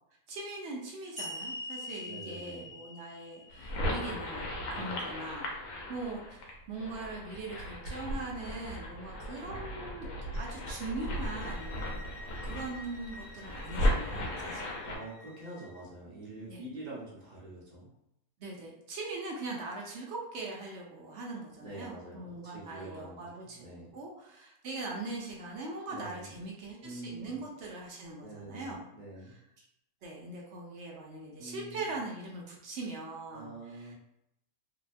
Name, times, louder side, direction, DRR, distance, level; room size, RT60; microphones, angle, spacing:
voice 1, 0.3-5.6 5.9-10.1 10.3-14.7 16.5-16.6 18.4-28.9 29.3-29.7 30.0-33.9, right 2 dB, 65° right, -1 dB, 0.7 m, -41 dB
sound 1, 1.2-4.5, left 1 dB, ahead, 0.9 m, -43 dB
voice 2, 2.0-2.7 4.7-5.0 9.4-9.7 14.8-17.9 21.6-23.9 25.9-26.3 26.8-27.4 28.2-29.4 31.4-31.8 33.3-33.9, right 2 dB, 35° right, -6 dB, 0.8 m, -46 dB
sound 2, 3.5-15.0, left 1 dB, 70° left, 1.0 m, -36 dB
sound 3, 10.9-15.8, left 1 dB, 35° left, 0.7 m, -51 dB
2.6 x 2.1 x 2.4 m, 0.81 s
omnidirectional pair, 1.6 m